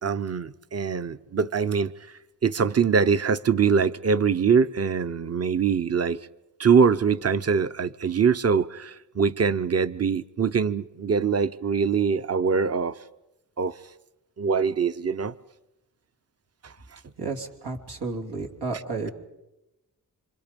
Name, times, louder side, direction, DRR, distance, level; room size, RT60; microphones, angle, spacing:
voice 1, 0.0-1.9 2.4-6.2 6.6-12.9 13.6-13.7 14.4-15.3, right 6 dB, 40° right, 0.9 m, -23 dB
voice 2, 17.2-19.1, right 3 dB, 90° right, 3.1 m, -32 dB
27.0 x 26.5 x 5.3 m
cardioid pair, 75°, 39 cm